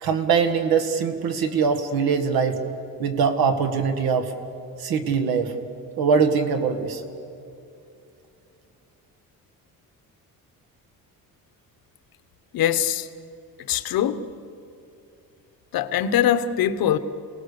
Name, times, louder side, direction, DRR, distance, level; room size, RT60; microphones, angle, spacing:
voice 1, 0.0-2.6 3.0-4.3 4.8-5.5 6.0-7.0, right 6 dB, 85° right, 2.0 m, -22 dB
voice 2, 12.5-13.1 13.7-14.2 15.7-17.0, left 10 dB, 80° left, 1.1 m, -22 dB
29.0 x 18.5 x 6.9 m
cardioid pair, 165°, 35 cm